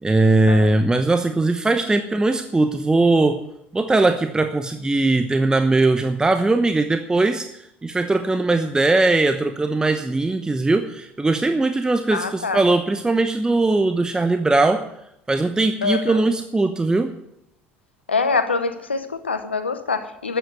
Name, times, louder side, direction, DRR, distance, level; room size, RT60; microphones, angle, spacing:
voice 1, 0.0-3.4 3.7-7.5 7.8-14.8 15.3-17.1, right 2 dB, 10° right, 8 dB, 0.9 m, -19 dB
voice 2, 12.1-12.6 15.8-16.2 18.1-20.4, left 4 dB, 85° left, 11 dB, 0.8 m, -24 dB
13.0 x 9.1 x 8.0 m, 0.80 s
figure-of-eight pair, 65°, 6 cm